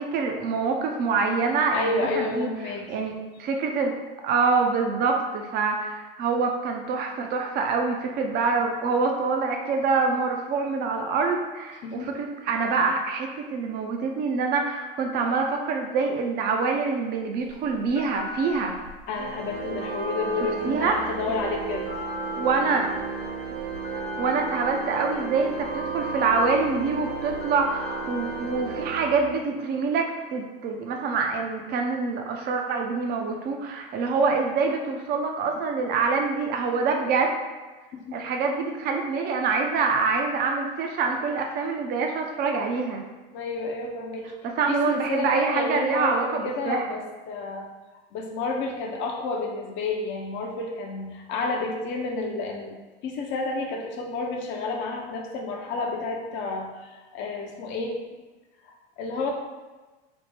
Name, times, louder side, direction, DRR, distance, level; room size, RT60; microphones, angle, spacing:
voice 1, 0.0-2.5 2.9-3.9 4.2-18.8 20.6-21.1 22.4-22.9 23.9-37.3 38.1-43.0 44.6-46.9, right 4 dB, 35° right, 2 dB, 0.4 m, -25 dB
voice 2, 1.7-3.0 11.8-12.1 19.1-22.0 37.9-38.2 43.3-44.3 44.7-47.7 48.1-58.0 58.6-59.3, left 3 dB, 40° left, 1 dB, 0.5 m, -30 dB
Telephone, 17.4-28.8, left 2 dB, 80° left, 0.9 m, -38 dB
Organ, 19.2-29.8, right 5 dB, 80° right, 0.6 m, -34 dB
3.3 x 2.0 x 3.1 m, 1.2 s
hypercardioid pair, 85°, 29 cm